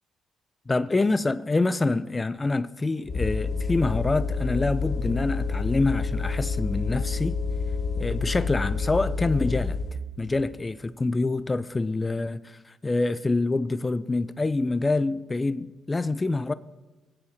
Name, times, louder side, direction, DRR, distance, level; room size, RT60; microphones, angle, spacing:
voice 1, 0.7-7.4 8.0-9.8 10.2-16.5, left 3 dB, 20° left, 0.6 m, -26 dB
sound 1, 3.1-10.0, left 4 dB, 55° left, 1.6 m, -28 dB
20.5 x 8.3 x 6.6 m
cardioid pair, 90°, 0 cm